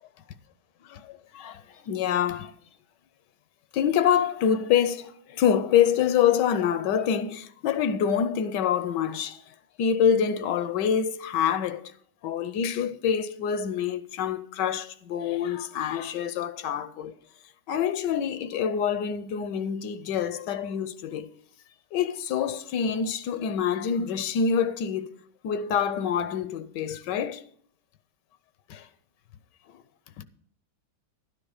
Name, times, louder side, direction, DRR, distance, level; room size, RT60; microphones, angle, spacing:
voice 1, 0.9-2.5 3.7-9.4 9.8-11.9 12.2-17.1 17.7-21.3 21.9-25.1 25.4-27.4 28.7-28.9 29.7-29.8, left 8 dB, 85° left, 1.3 m, -26 dB
12.0 x 9.9 x 4.9 m
omnidirectional pair, 1.9 m